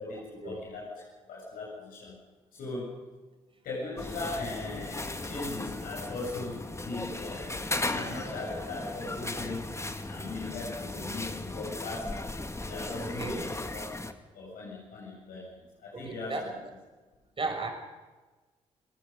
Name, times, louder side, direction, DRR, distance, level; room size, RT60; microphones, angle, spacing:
voice 1, 0.0-2.2 2.5-3.0 3.6-9.7 10.0-12.3 12.6-13.8 14.3-16.6, left 3 dB, 65° left, -4 dB, 7.8 m, -39 dB
sound 1, 4.0-14.1, left 2 dB, 15° left, 2.1 m, -36 dB
voice 2, 13.0-13.5 15.9-16.5 17.4-17.7, right 3 dB, 35° right, 4 dB, 6.1 m, -35 dB
29.0 x 18.5 x 5.4 m, 1.3 s
hypercardioid pair, 40°, 16 cm